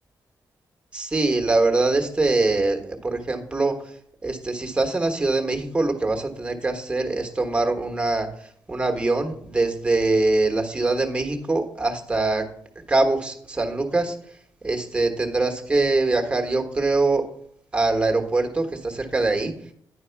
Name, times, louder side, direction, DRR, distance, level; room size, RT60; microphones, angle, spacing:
voice 1, 0.9-3.8 4.2-12.5 12.9-14.2 14.6-17.3 17.7-19.5, right 2 dB, 15° right, 3 dB, 1.2 m, -23 dB
10.0 x 4.6 x 4.5 m, 0.67 s
cardioid pair, 120°, 7 cm